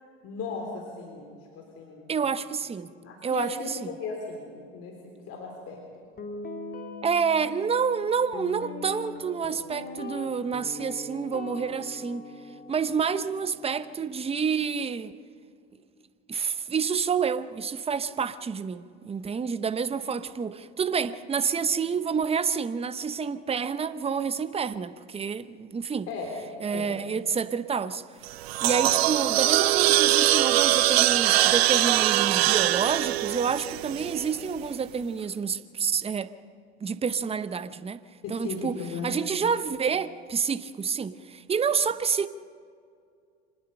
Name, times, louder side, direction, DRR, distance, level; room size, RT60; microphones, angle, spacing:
voice 1, 0.2-2.1 3.0-6.0 26.1-26.4 26.7-26.9 38.2-39.1, left 4 dB, 50° left, 3.7 m, -37 dB
voice 2, 2.1-2.9 3.2-3.5 3.8-3.9 7.0-12.2 12.7-15.1 16.3-26.1 26.6-28.0 28.6-36.3 36.8-38.0 38.3-38.8 39.0-42.3, right 6 dB, 20° right, 0.8 m, -28 dB
Guitar, 6.2-14.4, left 3 dB, 30° left, 2.3 m, -41 dB
sound 1, 28.2-34.5, right 16 dB, 75° right, 0.7 m, -22 dB
25.5 x 19.5 x 5.6 m
hypercardioid pair, 80°, 31 cm